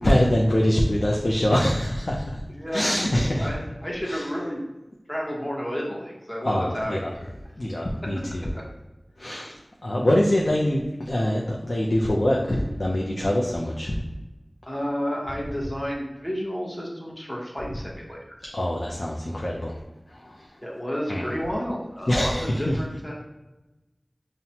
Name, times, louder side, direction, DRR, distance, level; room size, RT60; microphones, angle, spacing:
voice 1, 0.0-2.4 2.7-3.5 4.0-4.2 6.4-7.1 7.6-8.4 9.2-9.5 9.8-14.0 18.5-19.8 20.1-20.5 21.1-21.2 22.1-22.8, left 1 dB, 60° left, -3 dB, 0.5 m, -24 dB
voice 2, 2.5-3.0 3.4-4.6 5.1-7.3 14.6-18.6 20.6-23.1, equal, 20° left, -3 dB, 0.9 m, -31 dB
5.7 x 2.1 x 2.8 m, 1.0 s
wide cardioid pair, 45°, 0 cm